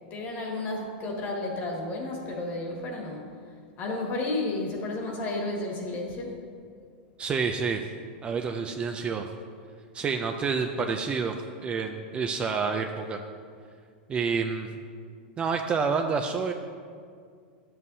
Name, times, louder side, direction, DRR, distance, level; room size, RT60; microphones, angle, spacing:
voice 1, 0.1-3.2 3.8-6.4, left 2 dB, 35° left, 0 dB, 1.7 m, -32 dB
voice 2, 7.2-7.8 8.2-9.3 9.9-11.4 11.6-13.2 14.1-14.7 15.4-16.5, right 5 dB, 20° right, 4 dB, 0.4 m, -28 dB
11.0 x 7.5 x 2.7 m, 2.1 s
supercardioid pair, 140°, 6 cm